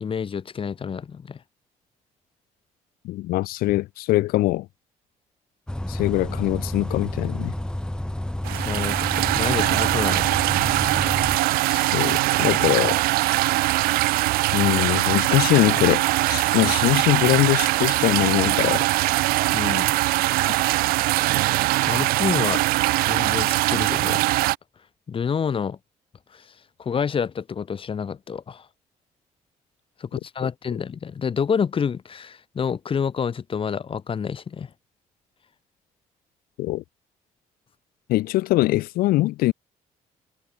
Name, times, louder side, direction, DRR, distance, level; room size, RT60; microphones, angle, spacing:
voice 1, 0.0-1.4 8.5-10.4 19.5-19.9 21.9-22.6 23.0-24.3 25.1-25.8 26.3-26.5 26.8-28.7 30.0-34.7, left 6 dB, 35° left, 0.6 m, -28 dB
voice 2, 3.0-4.7 5.9-7.5 11.7-13.0 14.5-18.9 30.4-30.5 36.6-36.8 38.1-39.5, left 17 dB, 85° left, 0.7 m, -22 dB
Bus, 5.7-11.4, left 1 dB, 5° left, 1.3 m, -30 dB
sound 1, 8.4-24.6, right 19 dB, 85° right, 0.5 m, -22 dB
supercardioid pair, 75°, 15 cm